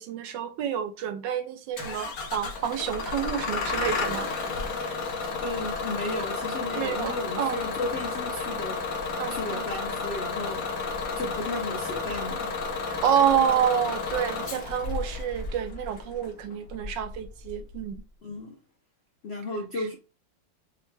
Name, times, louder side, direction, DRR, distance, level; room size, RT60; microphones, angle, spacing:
voice 1, 0.0-4.3 6.7-7.6 9.2-9.6 12.9-18.0, right 9 dB, 80° right, 1.3 m, -28 dB
Bus / Engine starting, 1.8-18.0, left 4 dB, 55° left, 1.1 m, -32 dB
voice 2, 5.4-8.8 9.3-10.8 11.2-12.5 18.2-18.6 19.2-19.9, left 2 dB, 80° left, 0.5 m, -34 dB
6.3 x 2.2 x 3.2 m
omnidirectional pair, 2.0 m